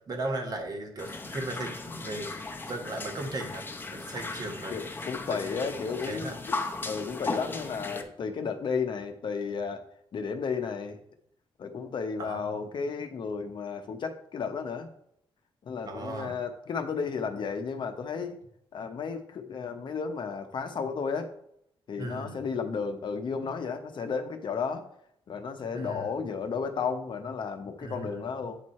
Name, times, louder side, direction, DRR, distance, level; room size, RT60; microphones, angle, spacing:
voice 1, 0.1-3.6 3.9-4.7 5.3-5.5 5.9-6.4 12.2-12.6 15.8-16.3 22.0-22.5 25.7-26.1 27.8-28.2, right 2 dB, 40° right, 3 dB, 1.3 m, -37 dB
sound 1, 1.0-8.0, left 3 dB, 20° left, 0.7 m, -37 dB
voice 2, 4.7-6.6 6.8-9.8 10.1-11.0 11.6-14.9 15.6-18.4 18.7-21.3 21.9-24.8 25.3-28.6, left 5 dB, 50° left, 7 dB, 0.8 m, -33 dB
8.8 x 4.7 x 4.2 m, 0.72 s
wide cardioid pair, 165°, 10 cm